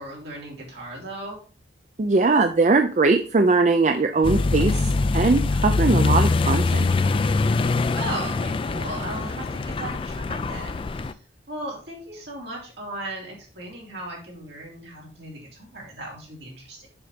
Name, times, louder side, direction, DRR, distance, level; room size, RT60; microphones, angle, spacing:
voice 1, 0.0-1.4 8.0-11.2 11.5-16.9, right 1 dB, 65° right, -3 dB, 3.6 m, -37 dB
voice 2, 2.0-6.9, right 3 dB, 40° right, 6 dB, 0.5 m, -20 dB
Accelerating revving vroom, 4.2-11.1, left 3 dB, 30° left, 0.3 m, -23 dB
6.9 x 5.2 x 5.1 m, 0.41 s
head